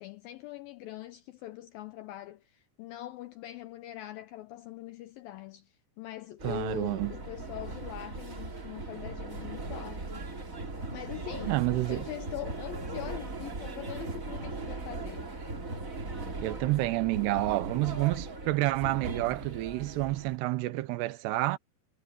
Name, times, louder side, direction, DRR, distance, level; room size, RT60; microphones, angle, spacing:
voice 1, 0.0-10.2 10.9-11.6 11.9-15.3, left 15 dB, 85° left, 2.1 m, -42 dB
sound 1, 6.4-20.4, right 3 dB, 25° right, 2.4 m, -39 dB
voice 2, 6.4-7.1 11.5-12.1 16.4-21.6, right 19 dB, 90° right, 2.8 m, -29 dB
omnidirectional pair, 4.9 m